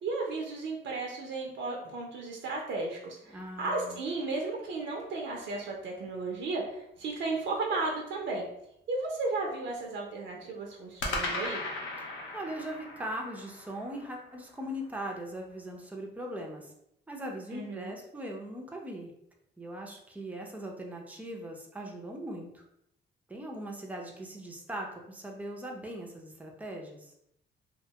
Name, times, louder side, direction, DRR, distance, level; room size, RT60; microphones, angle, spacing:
voice 1, 0.0-8.5 8.9-11.6 17.5-17.9, right 3 dB, 70° right, 0 dB, 0.6 m, -34 dB
sound 1, 3.3-5.2 11.0-15.3, left 2 dB, 85° left, 0.6 m, -39 dB
voice 2, 3.3-4.0 12.3-16.7 17.1-19.1 19.6-22.6 23.3-27.1, right 1 dB, 5° right, 0 dB, 0.5 m, -40 dB
2.4 x 2.2 x 2.8 m, 0.77 s
cardioid pair, 90°, 20 cm